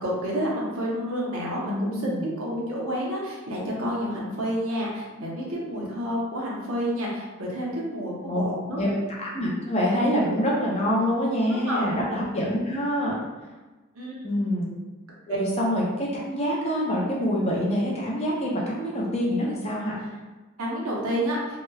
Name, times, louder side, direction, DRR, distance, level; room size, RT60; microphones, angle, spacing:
voice 1, 0.0-8.8 11.5-11.8 13.9-14.4 20.6-21.4, equal, 85° right, -4 dB, 0.7 m, -29 dB
voice 2, 1.6-2.3 8.3-8.4 8.8-8.9 9.2-13.1 14.2-14.7 15.3-20.0, equal, 30° left, -4 dB, 0.5 m, -26 dB
2.9 x 2.1 x 2.3 m, 1.2 s
head